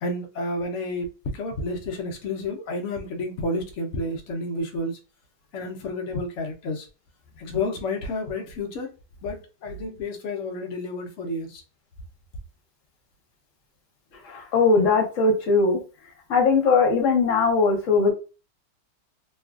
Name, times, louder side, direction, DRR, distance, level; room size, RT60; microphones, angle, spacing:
voice 1, 0.0-1.1 1.3-5.0 5.5-6.9 7.4-8.9 9.2-11.6, left 2 dB, 85° left, 0.6 m, -30 dB
voice 2, 14.3-15.8 16.3-18.1, left 4 dB, 55° left, 1.0 m, -20 dB
3.2 x 2.3 x 2.3 m
omnidirectional pair, 1.9 m